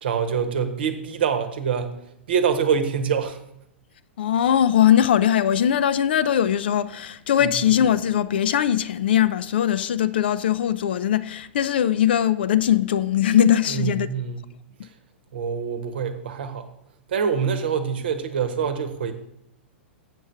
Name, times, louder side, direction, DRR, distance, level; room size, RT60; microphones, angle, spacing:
voice 1, 0.0-1.9 2.3-3.4 13.7-14.5 15.3-16.6 17.1-19.1, right 7 dB, 55° right, 1.0 m, -25 dB
voice 2, 4.2-14.1, left 10 dB, 55° left, 0.4 m, -20 dB
7.4 x 6.2 x 5.7 m
figure-of-eight pair, 100°, 6 cm